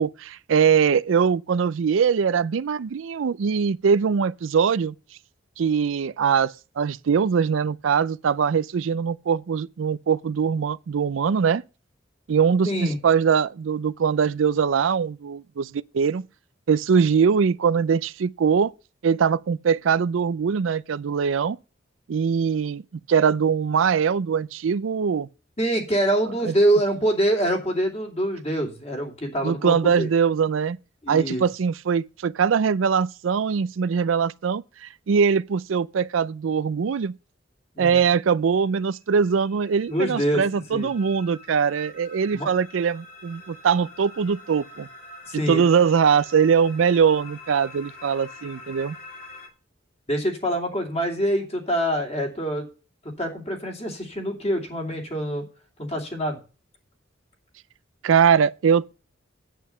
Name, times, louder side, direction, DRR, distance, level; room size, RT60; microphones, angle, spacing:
voice 1, 0.0-4.9 5.6-11.6 12.3-16.2 16.7-18.7 19.0-21.6 22.1-22.8 23.1-25.3 26.4-26.5 29.4-30.8 31.1-37.1 37.8-44.9 45.3-49.0 58.0-58.9, right 6 dB, 85° right, 0.4 m, -22 dB
voice 2, 12.6-13.0 25.6-30.1 31.0-31.4 37.7-38.0 39.9-40.9 42.3-42.5 45.3-45.6 50.1-52.7 53.2-55.5 55.8-56.4, right 1 dB, 30° left, 2.7 m, -25 dB
sound 1, 38.9-49.5, left 2 dB, 50° left, 2.5 m, -46 dB
9.2 x 8.5 x 5.5 m
head